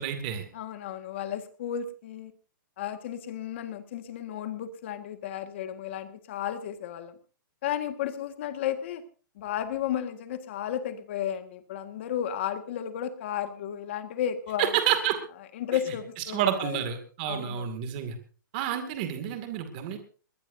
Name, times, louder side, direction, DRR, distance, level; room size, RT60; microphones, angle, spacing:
voice 1, 0.0-0.4 14.6-15.2 16.3-18.2 18.5-20.0, right 10 dB, 25° right, 7 dB, 2.4 m, -29 dB
voice 2, 0.5-2.3 2.8-7.1 7.6-9.0 9.4-14.7 15.5-16.8 17.3-17.7, left 10 dB, 35° left, 8 dB, 1.7 m, -33 dB
21.0 x 20.0 x 2.7 m, 0.38 s
hypercardioid pair, 175°, 11 cm